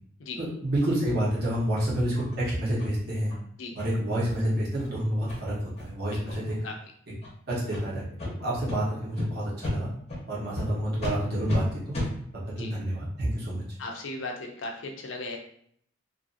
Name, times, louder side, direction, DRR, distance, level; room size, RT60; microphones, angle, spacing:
voice 1, 0.4-3.3 3.7-6.6 7.5-8.0 8.4-9.9 10.3-12.0 12.6-13.6, right 1 dB, 50° right, -6 dB, 1.0 m, -28 dB
sound 1, 1.8-1.9 2.3-2.4 2.8-2.9 3.3-3.4 3.8-3.9 4.3-4.4 4.8-4.9 5.3-5.4 5.8-5.9 6.3-6.6 7.2-7.3 7.7-7.8 8.2-8.3 8.7-8.8 9.2-9.3 9.6-9.8 10.1-10.2 10.6-10.7 11.0-11.1 11.5-11.6 11.9-12.1, left 2 dB, 30° left, 0.8 m, -33 dB
voice 2, 13.8-15.4, left 2 dB, 70° left, 2 dB, 0.5 m, -36 dB
2.6 x 2.5 x 2.5 m, 0.65 s
head